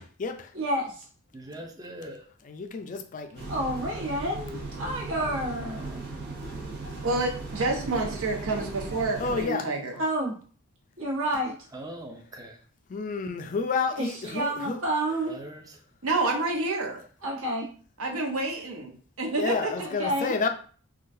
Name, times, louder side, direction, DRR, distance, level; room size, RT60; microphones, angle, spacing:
voice 1, 0.5-1.1 3.5-6.0 9.9-10.3 11.0-11.6 13.9-15.4 17.2-17.7 18.1-18.2 19.8-20.4, right 1 dB, 70° right, -3 dB, 1.3 m, -30 dB
voice 2, 1.3-2.2 11.7-12.6 15.3-15.7, right 1 dB, 15° right, 2 dB, 0.5 m, -41 dB
voice 3, 2.5-3.4 9.2-9.7 12.9-14.8 19.4-20.5, left 4 dB, 40° left, 8 dB, 0.3 m, -30 dB
sound 1, 3.4-9.4, right 3 dB, 50° right, 0.8 m, -37 dB
voice 4, 7.0-10.0 16.0-17.0 18.0-19.9, right 2 dB, 85° right, 2 dB, 0.7 m, -28 dB
3.7 x 2.3 x 2.6 m, 0.43 s
head